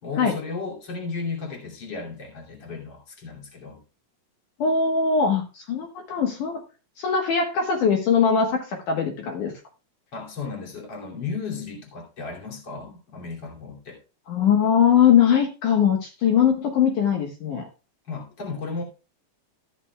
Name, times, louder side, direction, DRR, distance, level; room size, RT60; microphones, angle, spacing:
voice 1, 0.0-3.8 10.1-14.0 18.1-18.8, left 4 dB, 35° left, 3.1 m, -34 dB
voice 2, 4.6-6.6 7.0-9.5 14.3-17.7, left 7 dB, 70° left, 2.7 m, -21 dB
13.5 x 11.0 x 2.3 m
omnidirectional pair, 4.0 m